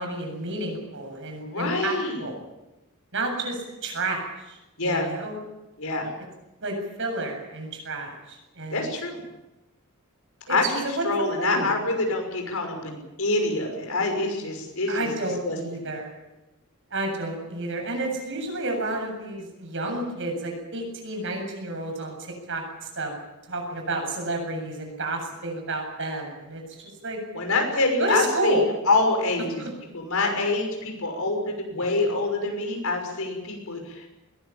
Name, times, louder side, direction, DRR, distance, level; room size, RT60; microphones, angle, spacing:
voice 1, 0.0-2.4 3.1-5.4 6.6-8.9 10.5-11.0 11.4-11.7 14.9-16.1 16.9-23.1 23.5-26.6 27.0-27.2 28.0-28.7 29.6-29.7 31.8-31.9, right 2 dB, 60° right, 2 dB, 7.7 m, -30 dB
voice 2, 1.4-2.2 4.8-5.1 5.8-6.1 8.7-9.2 10.5-15.1 15.4-15.6 27.3-29.6 29.9-34.1, left 2 dB, 70° left, 4 dB, 6.2 m, -26 dB
21.5 x 19.5 x 8.9 m, 0.99 s
head